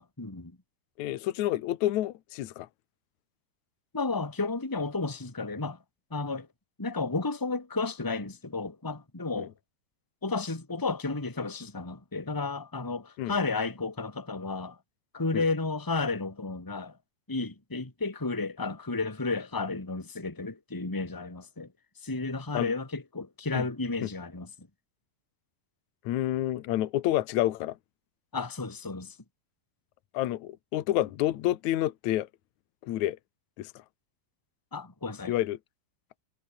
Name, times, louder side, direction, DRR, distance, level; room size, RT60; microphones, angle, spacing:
voice 1, 0.2-0.5 3.9-5.8 6.1-6.5 6.8-9.5 10.2-14.8 15.1-17.0 17.3-21.7 22.0-24.5 28.3-29.2 34.7-35.3, left 3 dB, 5° left, 2.0 m, -32 dB
voice 2, 1.0-2.7 9.4-9.5 13.2-13.3 15.3-15.4 22.5-22.7 23.5-23.7 24.0-24.1 26.0-27.8 30.1-32.3 32.8-33.2 33.6-33.7 35.3-35.6, left 14 dB, 65° left, 2.0 m, -29 dB
omnidirectional pair, 4.8 m